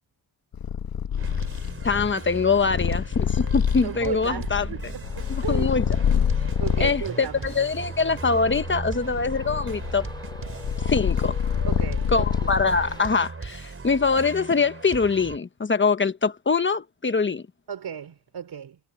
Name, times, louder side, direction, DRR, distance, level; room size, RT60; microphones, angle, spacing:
Purr, 0.5-7.1 7.7-13.0, left 8 dB, 65° left, 1.2 m, -27 dB
sound 1, 1.2-15.4, right 4 dB, 35° right, 4.4 m, -37 dB
voice 1, 1.8-4.7 5.3-5.9 6.8-10.1 10.9-11.3 12.1-17.5, left 4 dB, 30° left, 1.1 m, -23 dB
voice 2, 3.8-5.7 6.6-7.5 11.7-12.6 17.7-18.8, right 8 dB, 80° right, 4.8 m, -35 dB
Traffic noise roadway noise, 5.0-13.3, left 1 dB, 10° left, 3.5 m, -47 dB
wide cardioid pair, 120°, 39 cm